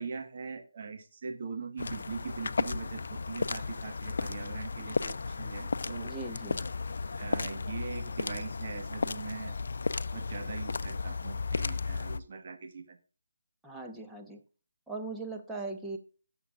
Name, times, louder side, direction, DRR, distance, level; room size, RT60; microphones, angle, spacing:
voice 1, 0.0-6.1 7.2-9.6 10.1-13.0, right 5 dB, 45° right, 5 dB, 1.7 m, -41 dB
sound 1, 1.8-12.2, left 4 dB, 60° left, 0.6 m, -34 dB
voice 2, 6.0-6.7 13.6-14.4 14.9-16.0, right 3 dB, 5° right, 0 dB, 1.2 m, -39 dB
18.0 x 7.2 x 2.5 m, 0.36 s
figure-of-eight pair, 155°, 0 cm